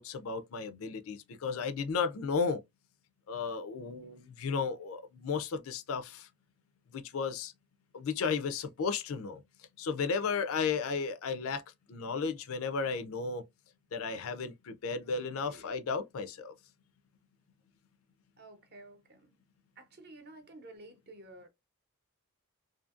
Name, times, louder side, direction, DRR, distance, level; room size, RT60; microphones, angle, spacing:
voice 1, 0.0-2.6 3.3-6.3 6.9-7.5 7.9-9.4 9.8-11.6 11.9-13.4 13.9-16.5, left 5 dB, 70° left, 0.4 m, -34 dB
voice 2, 15.4-15.7 18.4-19.4 19.8-21.5, right 2 dB, 50° right, 0.7 m, -52 dB
2.7 x 2.5 x 2.4 m
head